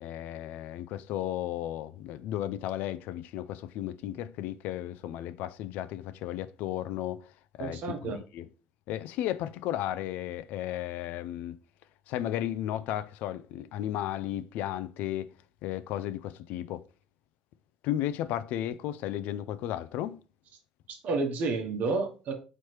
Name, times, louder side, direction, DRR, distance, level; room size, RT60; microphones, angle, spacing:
voice 1, 0.0-7.3 7.6-8.5 8.9-11.6 12.1-15.3 15.6-16.8 17.8-20.2, left 12 dB, 75° left, 0.3 m, -34 dB
voice 2, 7.6-8.2 20.9-22.3, right 3 dB, 65° right, 1.0 m, -30 dB
4.3 x 3.1 x 3.1 m
supercardioid pair, 80°, 3 cm